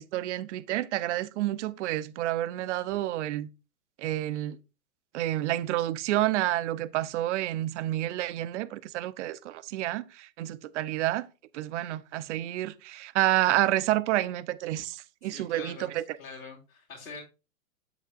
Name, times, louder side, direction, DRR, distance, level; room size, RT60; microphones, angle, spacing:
voice 1, 0.0-3.5 4.0-4.6 5.1-11.3 11.5-16.0, right 14 dB, 55° right, 0.6 m, -29 dB
voice 2, 15.2-15.9 16.2-17.2, left 4 dB, 85° left, 2.8 m, -44 dB
8.0 x 6.7 x 2.4 m
hypercardioid pair, 120°, 43 cm